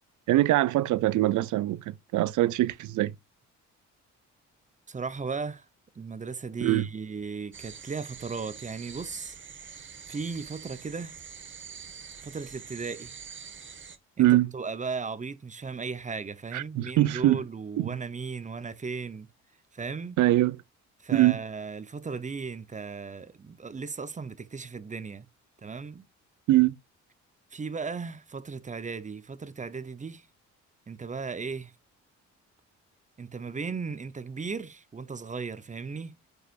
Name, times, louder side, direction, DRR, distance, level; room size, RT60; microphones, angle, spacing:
voice 1, 0.3-3.1 6.6-6.9 14.2-14.5 16.5-17.4 17.8-17.9 20.2-20.6 21.1-21.4 26.5-26.8, right 15 dB, 75° right, 0.6 m, -23 dB
voice 2, 4.9-5.7 5.9-9.3 9.6-11.2 12.2-13.1 14.2-19.3 19.7-20.2 21.0-25.3 25.6-26.1 27.5-30.3 30.9-31.7 33.2-36.2, right 4 dB, 25° right, 0.8 m, -36 dB
sound 1, 7.5-14.0, right 6 dB, 40° right, 1.5 m, -45 dB
9.3 x 4.9 x 2.5 m
cardioid pair, 90°, 30 cm